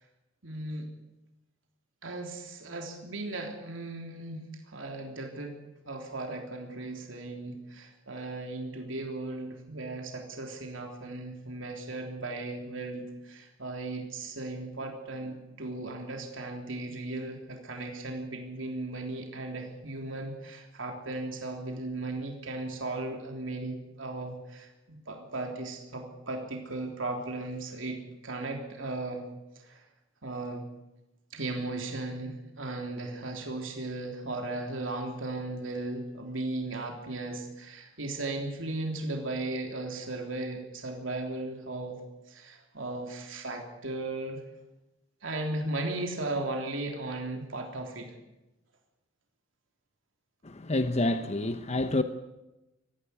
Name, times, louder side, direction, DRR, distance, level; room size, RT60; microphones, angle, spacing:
voice 1, 0.4-0.9 2.0-4.5 4.7-5.5 5.9-29.3 29.7-29.8 30.2-30.6 31.3-42.0 42.3-44.4 45.2-48.1, right 2 dB, 75° right, 2 dB, 3.5 m, -36 dB
voice 2, 50.4-52.0, left 2 dB, 35° left, 9 dB, 1.0 m, -28 dB
19.5 x 15.0 x 9.7 m, 0.97 s
head